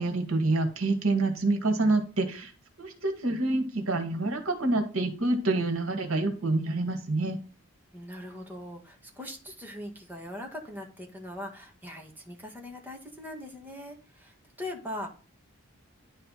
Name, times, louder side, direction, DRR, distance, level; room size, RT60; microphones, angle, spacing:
voice 1, 0.0-2.5 2.8-7.4, right 2 dB, 80° right, 6 dB, 1.8 m, -27 dB
voice 2, 7.9-15.1, left 1 dB, 10° right, 0 dB, 1.7 m, -41 dB
10.5 x 4.5 x 4.0 m, 0.36 s
head